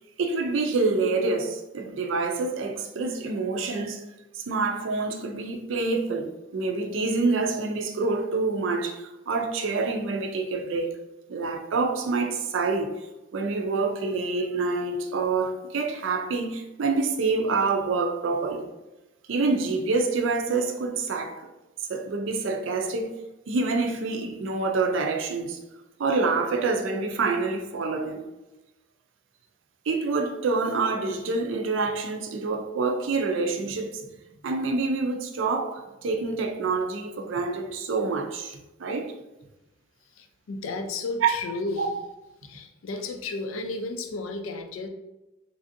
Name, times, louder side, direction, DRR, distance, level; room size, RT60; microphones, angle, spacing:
voice 1, 0.2-4.0 4.3-10.9 11.3-12.9 13.3-18.7 19.3-21.4 21.9-23.1 23.5-25.6 26.0-28.2 29.9-34.0 34.4-39.1 41.2-41.3 41.8-41.9, right 3 dB, 70° right, 0.4 m, -27 dB
voice 2, 40.0-41.9 42.4-44.9, left 3 dB, 85° left, 0.4 m, -33 dB
3.3 x 2.5 x 2.6 m
head